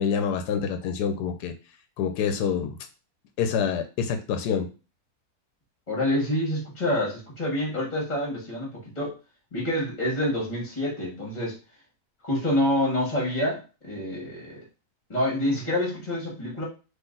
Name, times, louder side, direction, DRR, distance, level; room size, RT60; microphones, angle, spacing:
voice 1, 0.0-1.5 2.0-2.8 3.4-4.7, left 7 dB, 90° left, 7 dB, 1.2 m, -26 dB
voice 2, 5.9-9.1 9.5-11.6 12.2-14.6 15.1-16.6, left 1 dB, 30° left, -4 dB, 1.5 m, -27 dB
3.9 x 2.9 x 3.8 m, 0.32 s
omnidirectional pair, 1.7 m